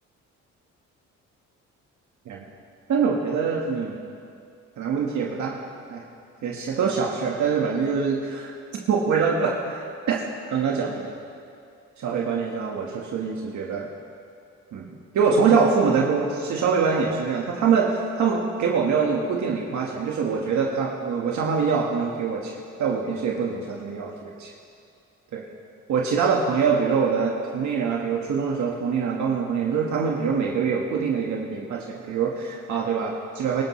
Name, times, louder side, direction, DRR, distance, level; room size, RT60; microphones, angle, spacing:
voice 1, 2.9-4.0 4.8-5.6 5.9-6.0 6.4-8.5 8.9-10.2 10.5-11.1 12.0-13.9 14.7-22.5 22.8-24.5 25.3-25.4 25.9-33.6, right 5 dB, 70° right, -2 dB, 1.5 m, -24 dB
25.0 x 13.0 x 3.2 m, 2.4 s
cardioid pair, 90°, 30 cm